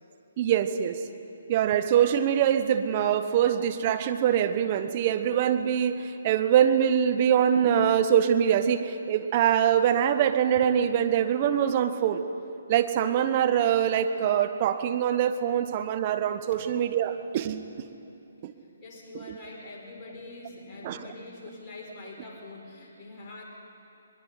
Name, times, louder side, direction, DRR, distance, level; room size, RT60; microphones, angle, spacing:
voice 1, 0.4-1.0 1.5-12.2 12.7-17.9 18.4-18.5 20.8-21.0, right 9 dB, 35° right, 9 dB, 1.1 m, -24 dB
voice 2, 18.6-23.4, left 2 dB, 25° left, -3 dB, 4.5 m, -44 dB
22.0 x 22.0 x 5.7 m, 2.7 s
figure-of-eight pair, 140°, 0 cm